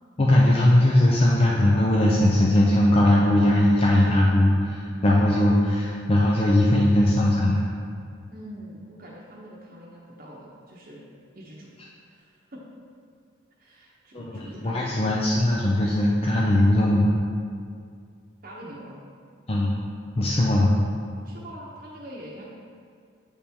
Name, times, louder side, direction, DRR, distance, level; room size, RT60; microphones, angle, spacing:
voice 1, 0.2-7.7 14.1-17.1 19.5-19.8 20.2-20.8, left 1 dB, 30° left, -3 dB, 0.5 m, -20 dB
voice 2, 3.7-4.5 8.3-11.1 11.3-11.7 12.1-12.6 13.6-15.0 18.4-19.0 21.2-22.5, equal, 50° right, -5 dB, 0.8 m, -44 dB
8.5 x 3.5 x 4.3 m, 2.2 s
head